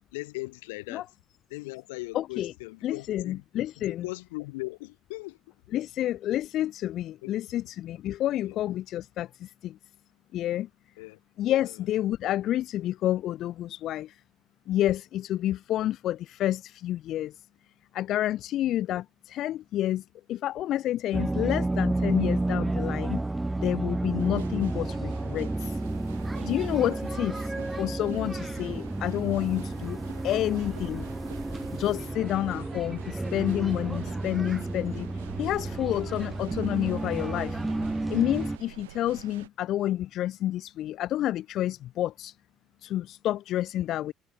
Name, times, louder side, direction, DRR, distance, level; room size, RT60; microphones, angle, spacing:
voice 1, 0.1-1.1 1.5-3.4 3.8-5.4 7.2-7.4 8.4-8.6 11.0-11.2 11.6-11.8, left 23 dB, 80° left, 6.8 m, -39 dB
voice 2, 2.1-2.5 2.8-4.1 5.7-9.8 10.3-10.7 11.4-14.2 14.7-17.4 17.9-23.2 23.6-25.8 26.4-30.0 30.2-31.1 31.7-37.6 38.1-42.4 42.8-44.1, left 13 dB, 60° left, 0.4 m, -29 dB
sound 1, 21.1-38.6, right 2 dB, 15° right, 1.1 m, -31 dB
sound 2, 24.2-39.5, right 16 dB, 85° right, 3.5 m, -47 dB
sound 3, 25.7-32.1, left 1 dB, 10° left, 7.6 m, -51 dB
hypercardioid pair, 60°, 0 cm